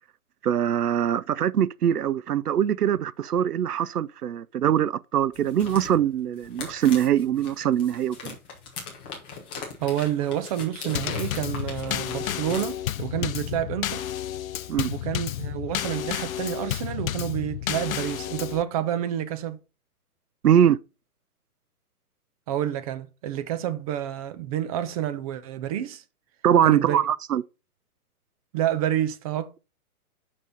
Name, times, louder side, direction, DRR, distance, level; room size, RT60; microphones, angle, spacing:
voice 1, 0.4-8.3 14.7-14.9 20.4-20.8 26.4-27.4, right 10 dB, 85° right, 0.6 m, -22 dB
sound 1, 5.3-12.6, left 5 dB, 10° left, 0.4 m, -40 dB
voice 2, 9.8-14.1 14.9-19.6 22.5-26.0 26.6-27.0 28.5-29.6, right 11 dB, 25° right, 0.7 m, -29 dB
Drum kit / Snare drum / Bass drum, 10.9-18.6, left 11 dB, 65° left, 0.6 m, -31 dB
6.7 x 5.5 x 5.2 m
hypercardioid pair, 135°, 45 cm